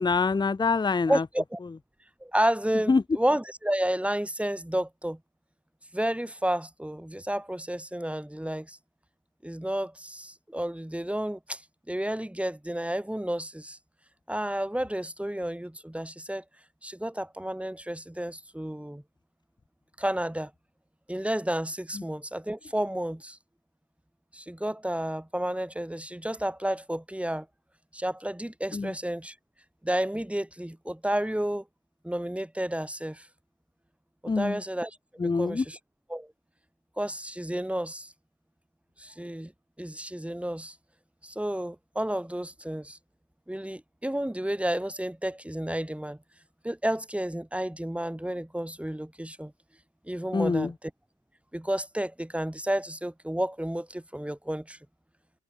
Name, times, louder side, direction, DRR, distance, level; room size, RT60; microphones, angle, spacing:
voice 1, 0.0-1.2 2.9-3.0 28.7-28.9 34.3-34.6 35.2-35.6 50.3-50.7, left 4 dB, 15° left, 0.6 m, -25 dB
voice 2, 1.1-1.6 2.2-5.2 5.9-8.8 9.4-11.6 11.9-13.8 14.3-16.4 16.8-19.0 20.0-20.5 21.1-23.4 24.3-27.5 27.9-29.3 29.8-31.6 32.0-33.3 34.2-35.0 35.2-35.8 36.1-36.3 37.0-38.1 39.0-39.5 39.8-40.8 41.2-43.0 43.5-46.2 46.6-49.5 50.0-50.9 51.5-54.8, right 1 dB, 5° right, 3.2 m, -31 dB
cardioid pair, 90°, 30 cm